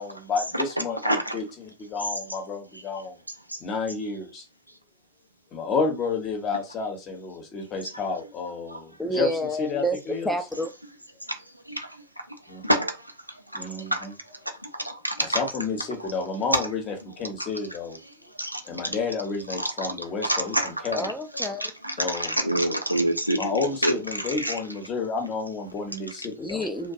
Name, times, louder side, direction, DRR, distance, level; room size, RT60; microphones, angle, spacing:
voice 1, 0.0-3.2 3.6-4.4 5.5-9.3 9.6-10.3 12.5-12.6 13.5-14.1 15.2-18.3 18.7-21.1 22.0-22.4 23.4-26.7, left 4 dB, 30° left, 0.8 m, -31 dB
voice 2, 1.0-1.4 3.5-3.6 8.7-8.8 11.7-11.9 12.6-12.9 13.5-14.0 14.7-15.4 16.0-16.1 16.5-16.6 18.4-18.6 19.5-19.9 20.2-24.6, right 1 dB, 90° right, 0.5 m, -27 dB
voice 3, 9.0-10.7 20.9-21.7 26.4-26.9, equal, 5° left, 0.5 m, -29 dB
2.6 x 2.2 x 2.5 m
figure-of-eight pair, 90°, 0 cm